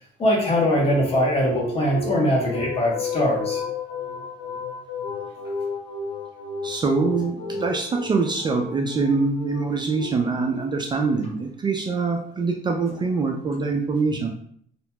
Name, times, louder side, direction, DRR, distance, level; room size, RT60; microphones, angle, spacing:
voice 1, 0.2-3.6, left 1 dB, 35° left, -2 dB, 1.1 m, -21 dB
sound 1, 0.7-11.4, left 4 dB, 80° left, 0.5 m, -33 dB
voice 2, 6.6-14.3, right 4 dB, 25° right, 2 dB, 0.3 m, -24 dB
2.9 x 2.8 x 2.2 m, 0.62 s
cardioid pair, 110°, 17 cm